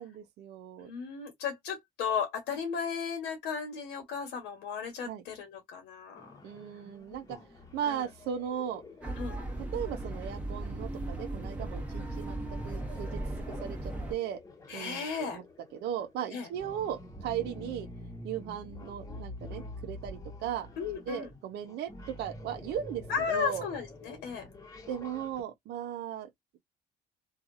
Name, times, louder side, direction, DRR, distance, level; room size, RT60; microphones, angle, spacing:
voice 1, 0.0-0.9 5.0-5.2 6.4-7.4 7.7-8.8 9.7-12.4 12.6-13.2 13.5-14.4 14.7-15.4 15.7-17.9 18.2-20.7 21.1-23.7 24.9-26.6, right 9 dB, 80° right, 0.7 m, -37 dB
voice 2, 0.8-6.3 7.9-8.0 9.2-9.4 14.7-15.4 16.3-16.5 20.8-21.3 23.1-24.4, left 6 dB, 85° left, 1.1 m, -35 dB
sound 1, 6.1-25.4, left 1 dB, 20° left, 1.0 m, -48 dB
sound 2, 9.0-14.1, right 2 dB, 10° right, 1.0 m, -37 dB
2.7 x 2.4 x 2.5 m
cardioid pair, 110°, 17 cm